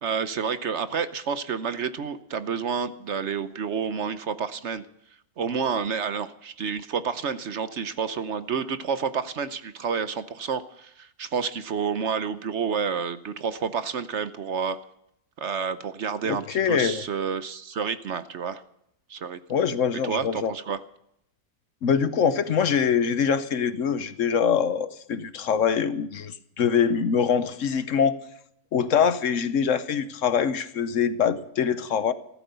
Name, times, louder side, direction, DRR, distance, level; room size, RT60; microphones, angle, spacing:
voice 1, 0.0-4.8 5.4-14.8 15.4-18.6 19.1-19.4 20.0-20.8, right 6 dB, 55° right, 12 dB, 1.0 m, -29 dB
voice 2, 16.2-17.0 19.5-20.5 21.8-28.2 28.7-32.1, left 7 dB, 65° left, 13 dB, 1.1 m, -24 dB
15.0 x 13.0 x 6.8 m, 0.76 s
omnidirectional pair, 1.5 m